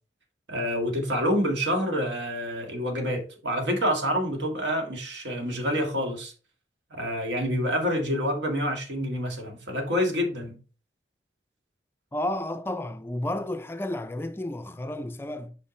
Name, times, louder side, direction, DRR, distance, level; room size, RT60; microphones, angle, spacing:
voice 1, 0.5-6.3 6.9-10.6, equal, 85° right, 1.9 m, -27 dB
voice 2, 12.1-15.6, left 1 dB, 15° left, 0.3 m, -32 dB
5.7 x 5.5 x 3.2 m
head